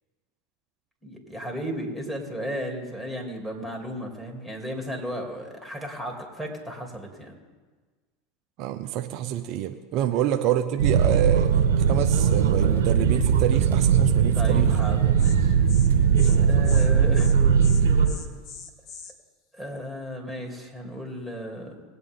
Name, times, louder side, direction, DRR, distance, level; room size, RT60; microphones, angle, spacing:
voice 1, 1.0-7.4 14.3-15.5 16.4-17.5 17.8-18.1 19.5-21.8, equal, ahead, 0 dB, 3.2 m, -35 dB
voice 2, 8.6-11.5 11.9-14.7 16.2-16.3, right 11 dB, 55° right, 7 dB, 0.7 m, -27 dB
sound 1, 10.8-18.1, right 7 dB, 80° right, 1.9 m, -20 dB
Insect, 14.8-14.9 15.2-15.4 15.7-15.9 16.2-16.4 16.6-16.9 17.1-17.3 17.6-19.1, left 6 dB, 50° left, 1.4 m, -41 dB
20.5 x 8.3 x 3.8 m, 1.4 s
hypercardioid pair, 90°, 0 cm